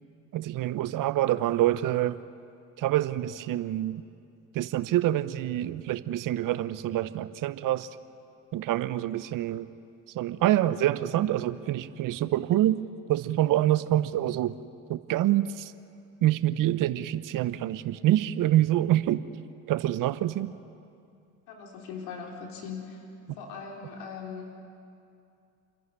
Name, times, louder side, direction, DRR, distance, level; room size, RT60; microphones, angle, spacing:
voice 1, 0.3-2.2 2.8-4.0 4.5-7.9 8.5-9.7 10.1-12.8 13.1-14.5 14.9-15.7 16.2-19.2 19.7-20.5, right 13 dB, 50° right, 15 dB, 0.9 m, -26 dB
voice 2, 21.5-23.0 23.4-24.5, left 6 dB, 70° left, 1 dB, 3.4 m, -40 dB
28.0 x 11.0 x 9.8 m, 2.5 s
hypercardioid pair, 70°, 40 cm